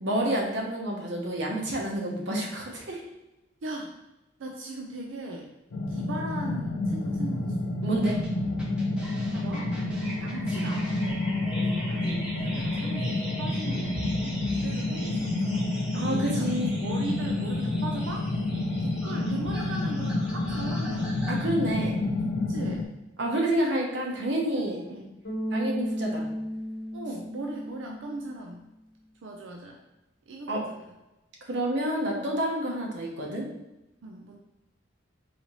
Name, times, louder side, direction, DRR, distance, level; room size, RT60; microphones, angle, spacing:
voice 1, 0.0-3.0 7.8-8.2 15.9-16.8 21.3-22.2 23.2-25.1 25.5-26.3 30.5-30.6 31.4-33.5, right 1 dB, 65° right, -1 dB, 0.9 m, -29 dB
voice 2, 3.6-3.9 4.4-5.5 5.9-7.8 9.3-9.7 10.2-18.3 18.8-21.2 22.5-22.9 24.6-25.0 26.9-28.6 29.2-29.8 30.3-30.8 32.6-32.7 34.0-34.4, right 2 dB, 85° right, 1 dB, 0.4 m, -39 dB
sound 1, 5.7-22.8, left 2 dB, 85° left, 0.4 m, -29 dB
sound 2, 8.0-21.4, right 1 dB, 5° right, 0.7 m, -40 dB
Bass guitar, 25.2-28.4, equal, 60° left, 0.9 m, -34 dB
4.0 x 2.8 x 3.0 m, 0.97 s
head